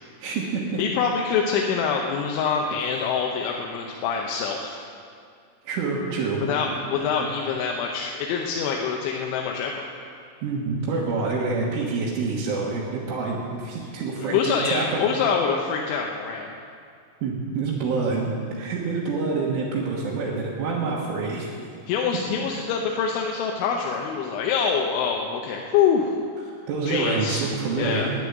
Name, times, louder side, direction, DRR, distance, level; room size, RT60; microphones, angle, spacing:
voice 1, 0.2-0.8 5.7-6.4 10.4-15.0 17.2-21.5 22.3-22.6 26.7-28.1, right 4 dB, 85° right, -5 dB, 3.9 m, -27 dB
voice 2, 0.8-4.8 6.4-9.9 14.2-16.5 21.9-26.1 26.8-27.5 27.8-28.1, left 6 dB, 80° left, 0 dB, 3.2 m, -25 dB
11.0 x 10.0 x 9.3 m, 2.3 s
omnidirectional pair, 5.5 m